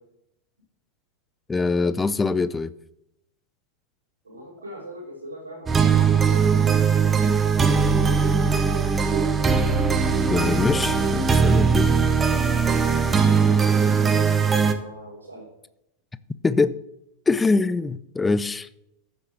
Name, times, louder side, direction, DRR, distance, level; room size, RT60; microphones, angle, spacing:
voice 1, 1.5-2.7 10.3-11.9 16.4-16.8 17.3-18.7, left 3 dB, 10° left, 0.5 m, -23 dB
voice 2, 4.2-6.5 14.7-15.5, right 1 dB, 70° right, 3.3 m, -42 dB
sound 1, 5.7-14.7, right 5 dB, 20° right, 1.0 m, -20 dB
14.0 x 8.1 x 3.5 m
figure-of-eight pair, 90°, 0 cm